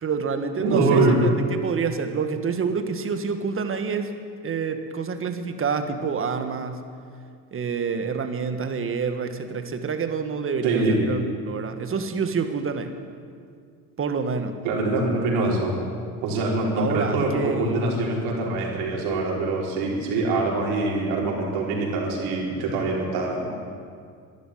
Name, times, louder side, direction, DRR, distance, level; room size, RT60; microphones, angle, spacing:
voice 1, 0.0-4.1 4.4-6.8 7.5-12.9 14.0-14.6 16.8-17.9, right 5 dB, 35° right, 8 dB, 1.6 m, -28 dB
voice 2, 0.6-1.2 10.6-11.0 14.6-15.7 16.2-23.5, right 3 dB, 80° right, -2 dB, 4.4 m, -24 dB
12.5 x 11.5 x 10.0 m, 2.2 s
supercardioid pair, 105°, 38 cm